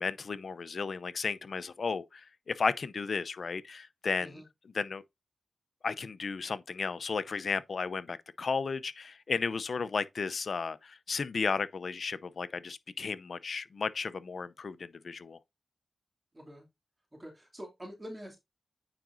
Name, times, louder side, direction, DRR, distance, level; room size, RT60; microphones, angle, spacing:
voice 1, 0.0-4.4 4.7-5.0 5.8-15.4, left 5 dB, 70° left, 0.6 m, -34 dB
voice 2, 16.3-16.7 17.1-18.4, equal, 25° right, 2.7 m, -45 dB
9.1 x 4.9 x 2.6 m
cardioid pair, 45°, 0 cm